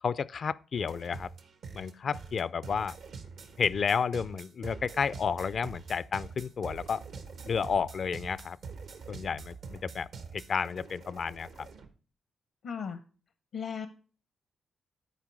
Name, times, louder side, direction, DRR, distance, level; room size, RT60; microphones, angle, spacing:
voice 1, 0.0-1.3 1.7-3.0 3.6-7.0 7.4-8.6 9.1-10.1 10.3-11.5, left 6 dB, 55° left, 0.4 m, -31 dB
sound 1, 0.8-11.9, right 5 dB, 75° right, 1.1 m, -45 dB
voice 2, 12.6-13.0 13.5-13.9, left 6 dB, 80° left, 0.7 m, -36 dB
11.0 x 4.5 x 4.7 m
supercardioid pair, 60°, 0 cm